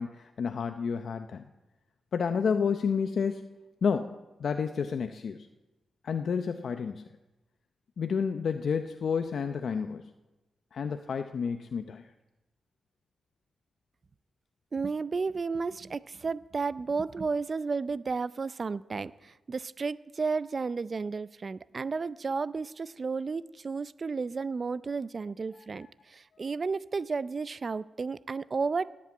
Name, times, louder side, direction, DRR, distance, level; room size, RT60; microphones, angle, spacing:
voice 1, 0.0-1.4 2.1-3.5 3.8-5.5 6.0-7.1 8.0-10.1 10.7-12.1, left 6 dB, 65° left, 8 dB, 0.6 m, -30 dB
voice 2, 14.7-28.9, right 4 dB, 40° right, 18 dB, 0.5 m, -33 dB
18.5 x 8.6 x 8.4 m, 1.1 s
cardioid pair, 95°, 0 cm